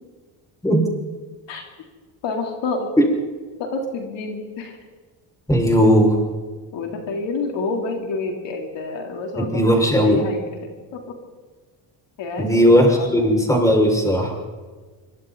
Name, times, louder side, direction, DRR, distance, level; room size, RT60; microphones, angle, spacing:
voice 1, 2.2-2.9 3.6-4.8 6.7-11.2 12.2-13.1, left 3 dB, 70° left, 1 dB, 3.8 m, -28 dB
voice 2, 5.5-6.2 9.4-10.2 12.4-14.3, equal, 5° left, 0 dB, 6.0 m, -17 dB
26.0 x 24.0 x 4.2 m, 1.4 s
cardioid pair, 120°, 45 cm